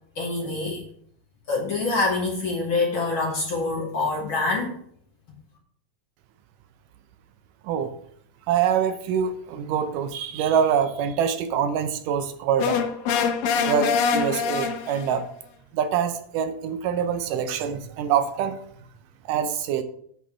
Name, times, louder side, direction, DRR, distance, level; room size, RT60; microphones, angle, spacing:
voice 1, 0.2-0.8 1.5-4.8, left 3 dB, 50° left, -2 dB, 1.7 m, -25 dB
voice 2, 8.5-12.8 13.6-15.3 15.7-18.6 19.3-19.8, right 8 dB, 80° right, 9 dB, 2.2 m, -25 dB
sound 1, 12.6-15.2, left 6 dB, 90° left, 2.6 m, -24 dB
8.4 x 4.3 x 7.2 m, 0.64 s
omnidirectional pair, 3.9 m